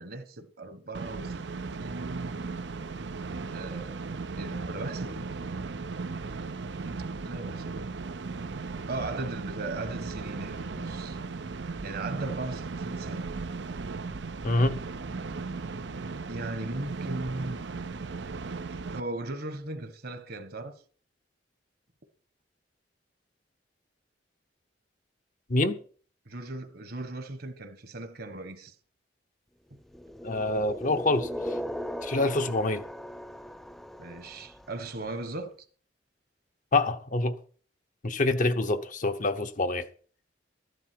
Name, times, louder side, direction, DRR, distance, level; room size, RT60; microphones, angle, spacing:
voice 1, 0.0-1.5 1.8-2.3 3.5-4.0 4.3-5.3 7.2-7.9 8.9-11.2 11.8-13.4 16.3-17.7 18.7-20.8 26.2-28.7 29.7-29.8 34.0-35.5, right 2 dB, 60° right, 1.4 m, -38 dB
sound 1, 0.9-19.0, right 4 dB, 80° right, 0.7 m, -36 dB
voice 2, 14.4-14.8 25.5-25.8 30.2-31.5 32.0-32.8 36.7-37.4 38.0-39.9, left 2 dB, 45° left, 0.9 m, -26 dB
sound 2, 29.9-34.9, equal, ahead, 0.5 m, -38 dB
13.0 x 11.0 x 4.6 m
head